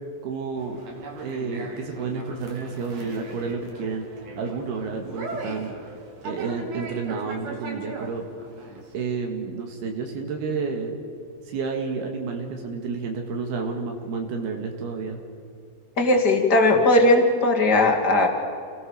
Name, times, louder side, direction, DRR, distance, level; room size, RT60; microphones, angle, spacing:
voice 1, 0.2-4.0 4.4-5.7 6.3-8.2 8.9-11.0 11.5-15.2, right 4 dB, 75° right, 3 dB, 3.6 m, -30 dB
Conversation, 0.6-8.9, right 2 dB, 45° right, 3.5 m, -39 dB
voice 2, 16.0-18.3, left 2 dB, 30° left, 3 dB, 2.0 m, -18 dB
28.0 x 18.0 x 6.6 m, 2.5 s
omnidirectional pair, 4.8 m